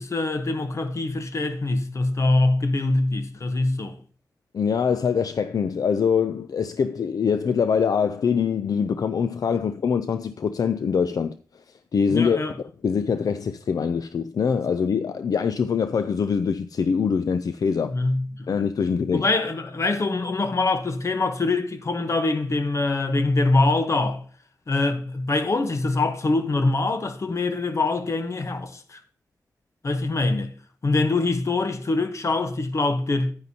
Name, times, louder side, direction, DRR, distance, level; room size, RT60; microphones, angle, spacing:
voice 1, 0.0-4.0 12.1-12.6 17.9-18.5 19.1-24.2 24.7-29.0 29.8-30.5 30.8-33.3, left 2 dB, 45° left, 0.9 m, -24 dB
voice 2, 4.5-11.4 11.9-12.4 12.8-18.0 18.5-19.3, left 6 dB, 65° left, 0.4 m, -23 dB
9.7 x 9.3 x 2.8 m
wide cardioid pair, 130°, 7 cm